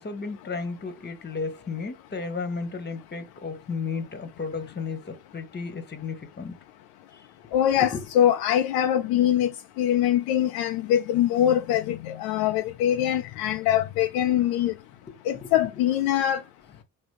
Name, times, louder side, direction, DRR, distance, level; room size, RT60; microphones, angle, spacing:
voice 1, 0.0-6.5 7.8-8.0 15.4-15.5, left 4 dB, 25° left, 1.4 m, -33 dB
voice 2, 7.5-9.5 9.8-14.7 15.3-16.4, left 11 dB, 65° left, 0.6 m, -23 dB
5.1 x 3.0 x 3.4 m
figure-of-eight pair, 45°, 41 cm